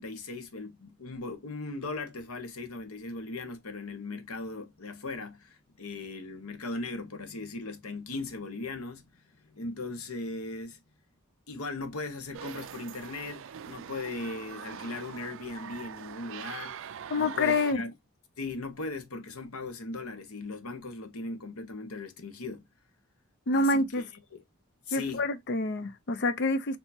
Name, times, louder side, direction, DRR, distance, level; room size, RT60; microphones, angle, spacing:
voice 1, 0.0-9.1 9.5-10.8 11.5-16.7 17.2-17.9 18.4-22.6 23.5-23.8 24.3-24.4 24.9-25.2, left 3 dB, 85° left, 1.0 m, -38 dB
sound 1, 12.3-17.7, right 8 dB, 60° right, 0.4 m, -43 dB
voice 2, 17.1-17.8 23.5-24.1 24.9-26.8, left 2 dB, 55° left, 0.6 m, -27 dB
4.5 x 2.7 x 2.7 m
head